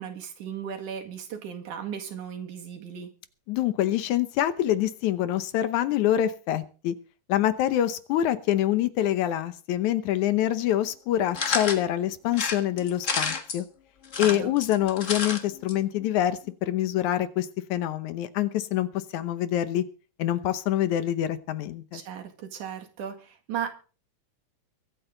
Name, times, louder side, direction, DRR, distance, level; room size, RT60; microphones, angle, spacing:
voice 1, 0.0-3.1 14.1-14.5 21.9-23.7, right 8 dB, 75° right, 4 dB, 3.4 m, -36 dB
voice 2, 3.5-6.9 7.3-13.7 14.2-18.9 19.1-19.8 20.2-22.0, left 12 dB, 75° left, 13 dB, 2.3 m, -26 dB
sound 1, 11.3-11.8 12.3-13.6 14.0-15.4 15.7-15.8 16.0-16.1, left 5 dB, 40° left, 1.1 m, -29 dB
23.0 x 8.9 x 3.9 m, 0.37 s
omnidirectional pair, 3.6 m